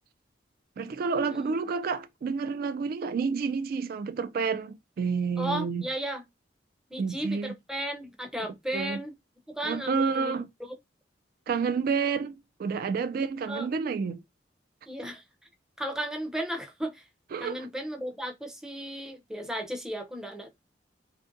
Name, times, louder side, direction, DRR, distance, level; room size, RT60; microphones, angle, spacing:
voice 1, 0.8-5.8 7.0-7.5 8.7-9.0 9.6-10.5 11.5-12.3 12.6-14.2 17.3-17.7, right 5 dB, 55° right, 0.3 m, -29 dB
voice 2, 5.4-6.2 6.9-9.1 9.5-10.3 13.5-13.7 14.9-15.2 15.8-17.0 17.4-20.5, right 1 dB, 5° right, 0.5 m, -34 dB
3.3 x 2.5 x 2.5 m
head